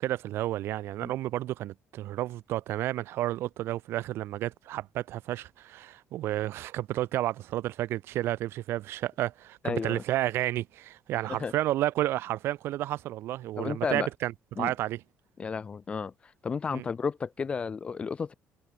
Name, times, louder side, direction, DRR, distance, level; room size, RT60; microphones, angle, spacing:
voice 1, 0.0-14.3 14.6-15.0 16.7-16.8, right 14 dB, 65° right, 0.4 m, -31 dB
voice 2, 9.6-10.0 11.3-11.5 13.6-14.1 14.6-14.7 15.4-18.3, left 5 dB, 25° left, 0.7 m, -33 dB
cardioid pair, 150°, 4 cm